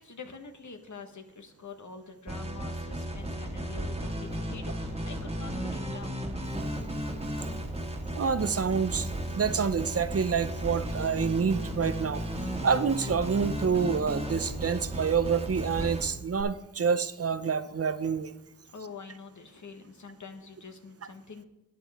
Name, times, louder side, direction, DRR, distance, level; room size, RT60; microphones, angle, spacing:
voice 1, 0.0-6.3 18.7-21.5, left 4 dB, 55° left, 6 dB, 1.2 m, -45 dB
sound 1, 2.3-16.4, equal, 15° right, 1.6 m, -34 dB
voice 2, 8.1-9.1 9.3-12.2 12.6-18.3, right 6 dB, 45° right, 13 dB, 0.6 m, -27 dB
11.5 x 8.7 x 3.5 m, 0.92 s
cardioid pair, 65°, 34 cm